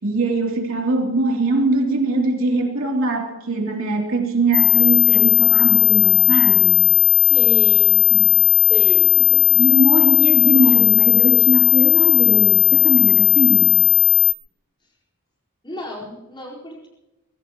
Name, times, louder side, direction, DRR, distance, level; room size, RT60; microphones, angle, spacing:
voice 1, 0.0-6.8 8.1-8.3 9.5-13.8, right 2 dB, 65° right, 0 dB, 3.3 m, -21 dB
sound 1, 4.5-14.3, left 16 dB, 80° left, 0.6 m, -15 dB
voice 2, 7.2-8.1 8.6-9.4 10.5-10.8 15.6-16.9, equal, 20° left, -4 dB, 4.7 m, -33 dB
23.5 x 16.5 x 3.1 m, 1.0 s
head